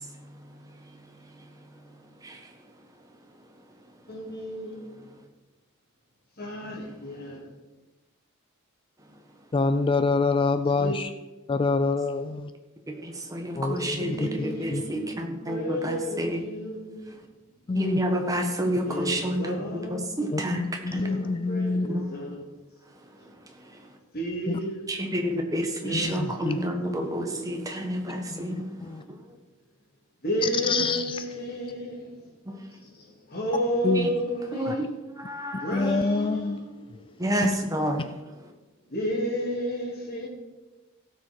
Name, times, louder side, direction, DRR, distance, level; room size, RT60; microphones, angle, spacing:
voice 1, 4.1-5.0 6.4-7.5 10.7-11.0 14.0-15.2 15.4-17.3 18.8-20.2 20.9-22.5 23.2-23.3 24.1-25.1 25.8-27.8 30.2-32.3 32.7-34.9 35.6-37.2 38.8-40.3, equal, 45° left, 3.0 m, -32 dB
voice 2, 9.5-11.1 11.5-12.5 13.6-14.8 17.7-18.0 20.3-21.9 24.5-24.6 25.9-26.6 28.3-29.0 30.4-31.2 33.8-34.1 34.7-34.8 35.7-36.6 37.4-37.5, left 3 dB, 25° left, 0.3 m, -26 dB
voice 3, 12.9-16.4 17.7-19.6 19.9-21.1 21.9-22.0 24.9-28.7 32.5-32.6 34.0-34.1 34.5-34.7 35.2-35.8 37.2-38.0, equal, 15° right, 1.3 m, -29 dB
16.5 x 6.5 x 4.6 m
head